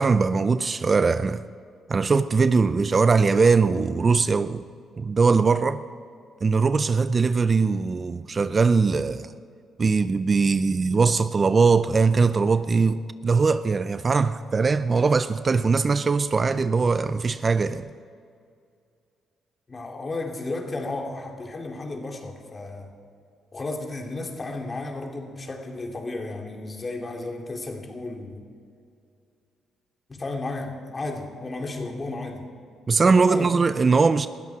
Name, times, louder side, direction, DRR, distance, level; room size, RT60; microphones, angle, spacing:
voice 1, 0.0-1.4 1.9-4.6 5.0-5.8 6.4-9.3 9.8-17.9 32.9-34.3, right 4 dB, 35° right, 0.5 m, -21 dB
voice 2, 19.7-22.9 23.5-28.4 30.1-32.5 33.0-33.5 33.9-34.0, left 2 dB, 30° left, 2.7 m, -33 dB
20.5 x 13.5 x 4.8 m
cardioid pair, 90°, 0 cm